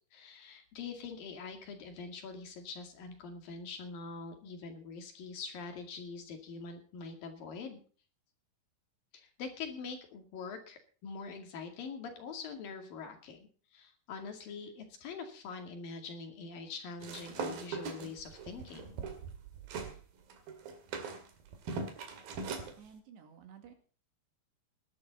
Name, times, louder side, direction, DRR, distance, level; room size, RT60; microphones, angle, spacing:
voice 1, 0.1-7.8 9.1-19.0, left 5 dB, 60° left, 5 dB, 3.8 m, -44 dB
sound 1, 17.0-20.0 20.3-22.7, right 4 dB, 60° right, 3.7 m, -40 dB
voice 2, 22.8-23.7, right 7 dB, 90° right, 6 dB, 4.4 m, -53 dB
18.0 x 12.0 x 4.0 m, 0.40 s
omnidirectional pair, 4.8 m